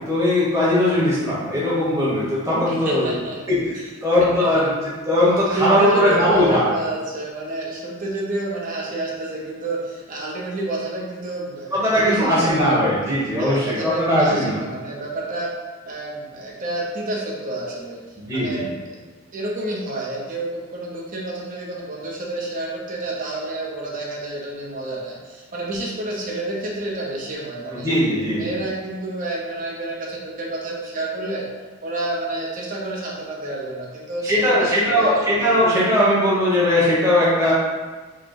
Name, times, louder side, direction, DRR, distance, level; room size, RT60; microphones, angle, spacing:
voice 1, 0.1-3.1 3.5-4.7 5.0-6.6 11.7-14.6 18.2-18.6 27.7-28.5 34.2-37.5, left 1 dB, 15° right, -9 dB, 1.1 m, -19 dB
voice 2, 2.7-3.4 3.7-3.9 4.4-4.5 5.5-12.6 13.4-15.5 15.8-18.0 18.3-19.0 19.3-27.9 28.3-31.5 31.8-35.2, right 2 dB, 35° right, -3 dB, 0.9 m, -29 dB
4.6 x 2.3 x 4.7 m, 1.3 s
head